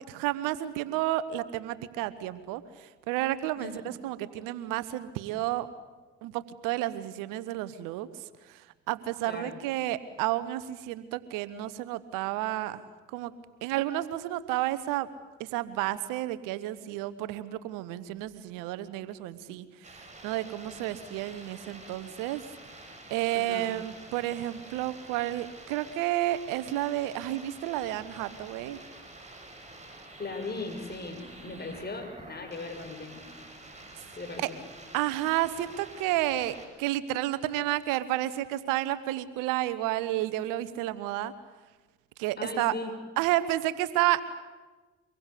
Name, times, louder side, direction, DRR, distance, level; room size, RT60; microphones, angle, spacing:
voice 1, 0.0-5.7 6.2-8.1 8.5-12.8 13.1-13.3 13.6-15.1 15.4-22.4 23.1-28.8 34.4-34.5 34.9-41.3 42.2-42.7 43.2-44.2, right 15 dB, 80° right, 15 dB, 1.2 m, -31 dB
voice 2, 9.3-9.6 23.3-23.7 30.2-33.2 34.2-34.6 42.4-42.9, left 3 dB, 30° left, 4 dB, 6.8 m, -38 dB
sound 1, 19.8-36.7, right 2 dB, 20° right, 7.5 m, -48 dB
25.0 x 22.0 x 8.5 m, 1.3 s
hypercardioid pair, 55°, 32 cm